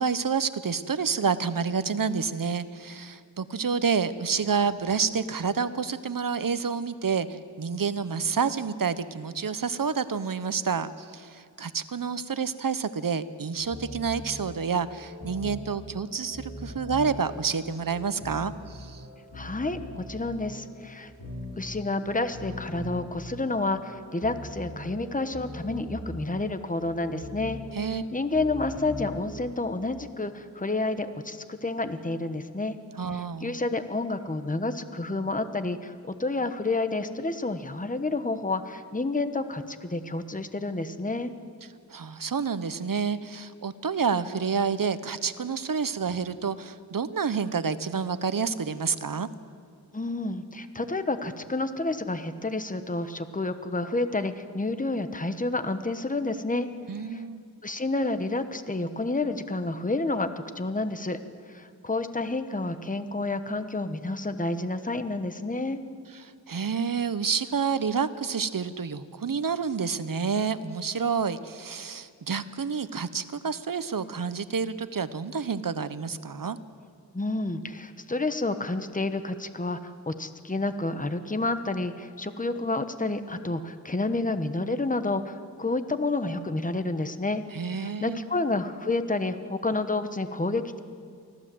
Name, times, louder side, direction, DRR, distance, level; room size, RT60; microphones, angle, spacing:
voice 1, 0.0-19.0 27.7-28.0 33.0-33.6 41.9-49.3 56.9-57.4 66.2-76.6 87.5-88.2, right 6 dB, 60° right, 13 dB, 0.9 m, -29 dB
sound 1, 13.6-29.9, left 1 dB, 55° left, 5.4 m, -42 dB
voice 2, 19.3-21.1 21.5-27.6 27.9-32.7 33.1-41.3 49.9-56.7 57.1-57.2 57.6-60.3 60.6-61.2 61.5-65.8 77.1-87.4 87.7-90.8, left 2 dB, 20° left, 10 dB, 1.1 m, -29 dB
24.5 x 16.0 x 7.7 m, 2.2 s
wide cardioid pair, 85°, 38 cm